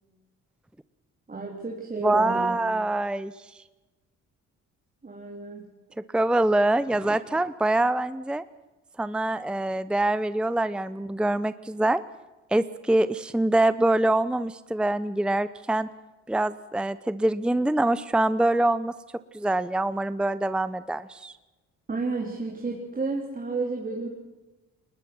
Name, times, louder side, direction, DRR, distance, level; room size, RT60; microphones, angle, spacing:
voice 1, 1.3-2.6 5.0-5.7 21.9-24.1, right 3 dB, 30° right, -1 dB, 3.6 m, -31 dB
voice 2, 2.0-3.3 6.1-8.4 9.0-12.0 12.5-15.9 16.3-18.9 19.3-21.3, right 2 dB, 5° right, 15 dB, 0.7 m, -24 dB
22.5 x 20.0 x 6.1 m, 1.1 s
cardioid pair, 90°, 30 cm